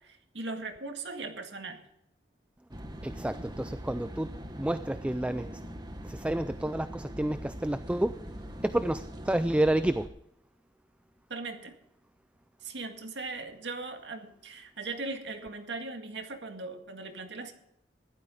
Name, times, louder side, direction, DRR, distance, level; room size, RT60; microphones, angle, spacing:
voice 1, 0.0-1.9 11.3-11.7 12.6-17.5, right 3 dB, 85° right, 1.9 m, -39 dB
sound 1, 2.7-10.1, equal, 25° right, 1.3 m, -42 dB
voice 2, 3.0-5.6 6.0-8.2 8.6-10.1, right 1 dB, 5° right, 0.3 m, -30 dB
15.0 x 12.0 x 3.8 m
head